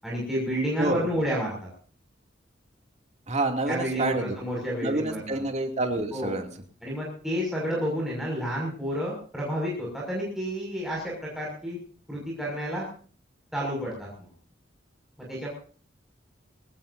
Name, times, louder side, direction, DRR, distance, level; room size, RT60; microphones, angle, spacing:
voice 1, 0.0-1.7 3.6-5.4 6.1-6.3 6.8-11.8 12.1-12.9 13.5-14.3 15.3-15.5, equal, ahead, -4 dB, 6.3 m, -30 dB
voice 2, 3.3-4.3 4.8-6.5, right 2 dB, 40° right, 4 dB, 2.7 m, -28 dB
21.5 x 19.0 x 2.7 m, 0.41 s
head